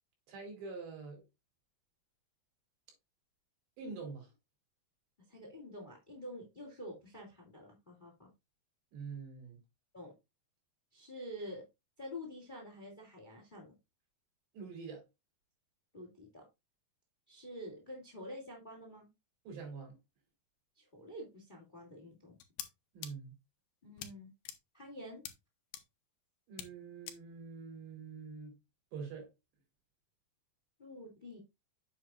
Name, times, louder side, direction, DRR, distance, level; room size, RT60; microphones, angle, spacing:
voice 1, 0.3-1.2 3.8-4.3 8.9-9.6 14.5-15.0 19.5-20.0 22.9-23.4 26.5-28.6 28.9-29.3, right 5 dB, 80° right, 5.8 m, -45 dB
voice 2, 5.3-8.3 9.9-10.1 10.9-11.6 12.0-13.8 15.9-16.4 17.3-19.1 20.8-22.4 23.8-24.3 24.7-25.2 30.8-31.4, equal, 15° left, 2.0 m, -48 dB
sound 1, 22.4-22.7 23.0-23.1 24.0-24.1 24.5-24.6 25.3-25.4 25.7-25.8 26.6-26.7 27.1-27.2, left 11 dB, 75° left, 2.8 m, -43 dB
8.9 x 7.6 x 2.5 m
omnidirectional pair, 4.8 m